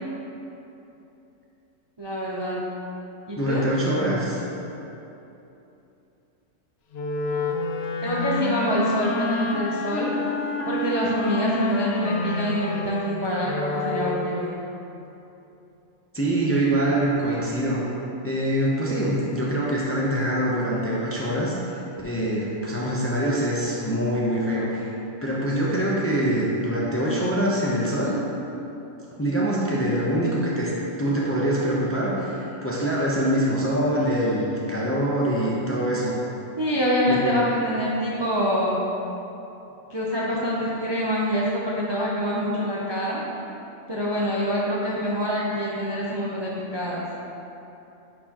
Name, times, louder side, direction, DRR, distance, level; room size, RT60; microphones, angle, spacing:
voice 1, 2.0-2.6 3.3-3.7 8.0-10.1 10.7-14.6 36.6-38.8 39.9-43.2 43.9-47.1, equal, 30° right, -6 dB, 0.5 m, -25 dB
voice 2, 3.4-4.4 16.1-17.8 18.2-21.5 22.0-24.8 25.2-28.2 29.2-30.7 31.0-36.1 37.1-37.5, right 1 dB, 15° left, -5 dB, 0.6 m, -24 dB
Wind instrument woodwind instrument, 6.9-14.3, left 3 dB, 65° left, 0.7 m, -28 dB
9.9 x 4.4 x 3.0 m, 2.9 s
omnidirectional pair, 1.4 m